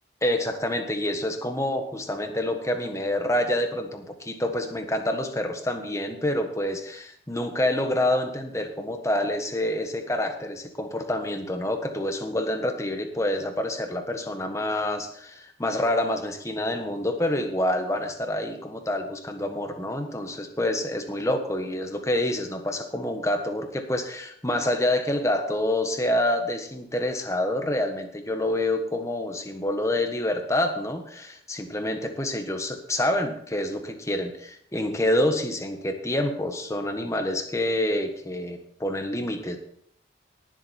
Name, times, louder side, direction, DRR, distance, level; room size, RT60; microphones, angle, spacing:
voice 1, 0.2-39.6, left 1 dB, 15° left, 5 dB, 1.4 m, -27 dB
18.5 x 7.7 x 4.3 m, 0.66 s
head